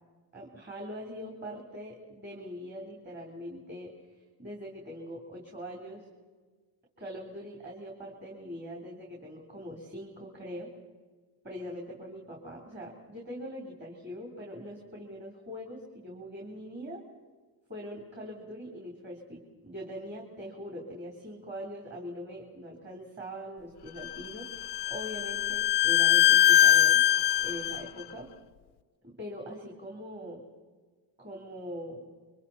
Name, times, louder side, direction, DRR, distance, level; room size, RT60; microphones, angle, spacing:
voice 1, 0.3-3.9 4.4-6.1 7.0-10.7 11.4-17.0 17.7-27.0 27.4-28.3 29.0-30.4 31.2-32.0, equal, 25° right, -1 dB, 3.6 m, -42 dB
Bowed string instrument, 24.0-27.8, left 12 dB, 75° left, 0.6 m, -23 dB
29.0 x 24.0 x 4.2 m, 1.4 s
wide cardioid pair, 160°, 41 cm